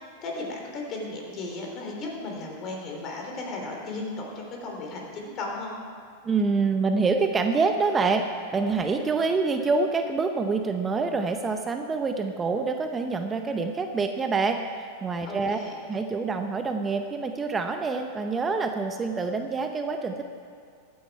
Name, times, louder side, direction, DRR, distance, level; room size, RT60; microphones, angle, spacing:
voice 1, 0.2-5.8 15.3-15.7, left 2 dB, 40° left, 0 dB, 3.2 m, -35 dB
voice 2, 6.2-8.2 8.5-14.6 15.0-20.2, right 4 dB, 20° right, 6 dB, 0.7 m, -26 dB
14.5 x 9.5 x 4.7 m, 2.3 s
hypercardioid pair, 110°, 0 cm